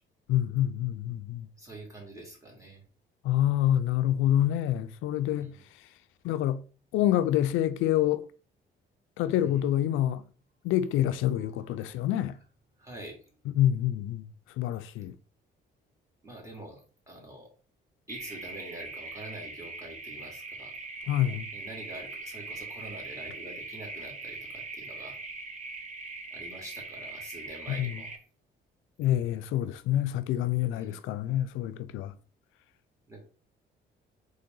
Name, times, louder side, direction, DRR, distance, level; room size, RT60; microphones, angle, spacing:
voice 1, 0.3-1.5 3.2-5.5 6.2-6.6 6.9-8.2 9.2-10.2 10.6-12.3 13.6-14.2 14.6-15.1 21.1-21.5 27.8-27.9 29.0-32.1, left 12 dB, 90° left, 0.4 m, -27 dB
voice 2, 1.6-2.8 5.4-5.7 9.4-9.7 11.3-11.8 12.2-12.3 12.8-13.2 16.2-17.5 18.1-20.7 21.5-25.2 26.3-28.2 30.7-31.0 33.1-33.2, right 1 dB, 15° right, 2.2 m, -46 dB
sound 1, 18.1-28.2, right 3 dB, 35° right, 1.0 m, -41 dB
3.9 x 3.3 x 3.7 m
cardioid pair, 90°, 20 cm